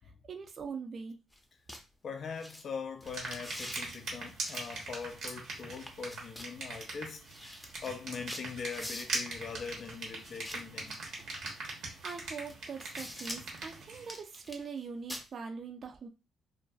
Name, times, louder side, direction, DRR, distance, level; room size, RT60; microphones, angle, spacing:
voice 1, 0.3-1.2 12.0-16.1, right 5 dB, 50° right, 0.5 m, -42 dB
sound 1, 1.3-1.4 1.7-1.8 2.4-2.6 3.0-3.8 4.4-5.4 5.7-6.5 6.9-7.0 7.2-9.3 10.2-11.3 12.0-12.1 12.5-13.6 14.0-14.8 15.1-15.2, equal, 10° left, 0.6 m, -45 dB
voice 2, 2.0-11.0, left 6 dB, 55° left, 0.3 m, -42 dB
sound 2, 3.0-14.1, right 3 dB, 75° right, 1.1 m, -41 dB
2.4 x 2.3 x 2.3 m
cardioid pair, 90°, 0 cm